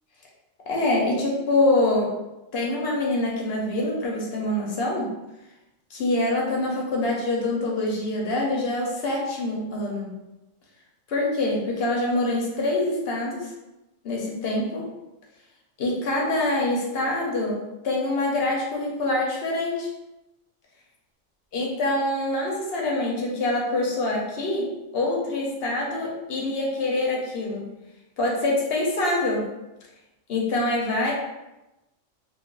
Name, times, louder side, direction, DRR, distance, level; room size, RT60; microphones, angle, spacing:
voice 1, 0.7-2.1 2.5-5.1 5.9-10.2 11.1-13.5 14.0-14.9 15.8-19.9 21.5-27.7 28.2-29.5 30.3-31.1, left 2 dB, 60° left, -2 dB, 0.8 m, -25 dB
2.4 x 2.2 x 3.7 m, 0.98 s
omnidirectional pair, 1.4 m